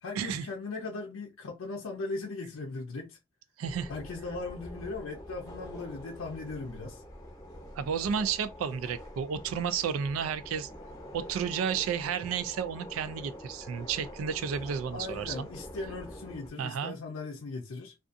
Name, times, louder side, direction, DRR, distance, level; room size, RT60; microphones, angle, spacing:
voice 1, 0.0-3.2 3.9-7.0 14.9-17.9, left 3 dB, 80° left, 0.5 m, -38 dB
sound 1, 3.6-16.5, equal, 15° left, 0.8 m, -45 dB
voice 2, 3.6-3.9 7.8-10.7 11.1-15.5 16.6-16.9, right 7 dB, 85° right, 0.3 m, -32 dB
2.5 x 2.3 x 2.5 m
head